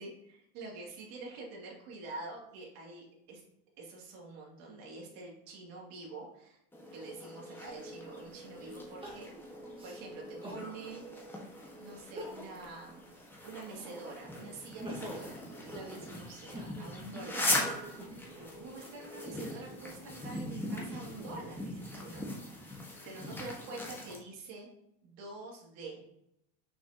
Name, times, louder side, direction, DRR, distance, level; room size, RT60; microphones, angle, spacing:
voice 1, 0.0-3.4 3.8-6.6 6.9-9.3 9.8-11.1 11.8-13.1 13.4-17.5 18.3-22.2 22.5-22.7 23.0-24.7 25.0-26.0, right 3 dB, 55° right, -2 dB, 2.6 m, -46 dB
sound 1, 6.7-24.2, left 1 dB, 5° left, 1.5 m, -40 dB
Crying sobbing, 9.0-10.7 11.2-11.3 12.0-12.7 13.1-14.1 14.5-18.6 19.3-21.3 21.9-22.7, right 1 dB, 15° right, 2.0 m, -47 dB
6.3 x 6.0 x 2.9 m, 0.80 s
supercardioid pair, 115°, 31 cm